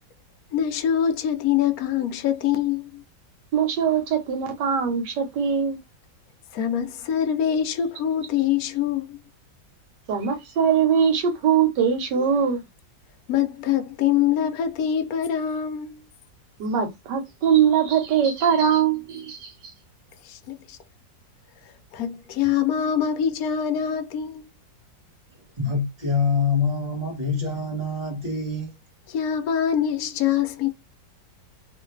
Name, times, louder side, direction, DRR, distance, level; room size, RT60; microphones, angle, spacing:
voice 1, 0.5-3.0 6.5-9.2 13.3-16.0 20.2-20.8 21.9-24.5 29.1-30.7, left 9 dB, 70° left, 0.9 m, -24 dB
voice 2, 3.5-5.8 10.1-12.6 16.6-19.7, right 7 dB, 75° right, 1.4 m, -22 dB
voice 3, 25.6-28.7, left 4 dB, 20° right, 1.3 m, -25 dB
3.0 x 2.5 x 3.2 m
omnidirectional pair, 2.0 m